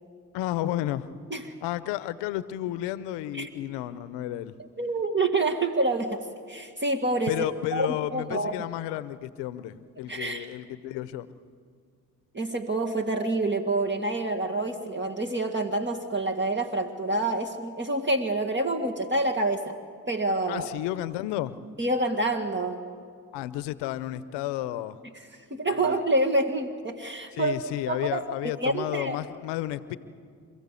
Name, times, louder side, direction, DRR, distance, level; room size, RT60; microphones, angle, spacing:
voice 1, 0.3-1.1 1.6-4.5 7.3-11.3 20.5-21.6 23.3-25.0 25.8-25.9 27.3-30.0, left 14 dB, 90° left, 15 dB, 0.8 m, -32 dB
voice 2, 4.8-7.4 7.7-8.6 10.1-10.5 12.3-19.8 20.1-20.7 21.8-22.8 25.1-28.3 28.6-29.2, right 2 dB, 25° right, 3 dB, 1.9 m, -27 dB
28.5 x 15.0 x 8.3 m, 2.2 s
hypercardioid pair, 45°, 41 cm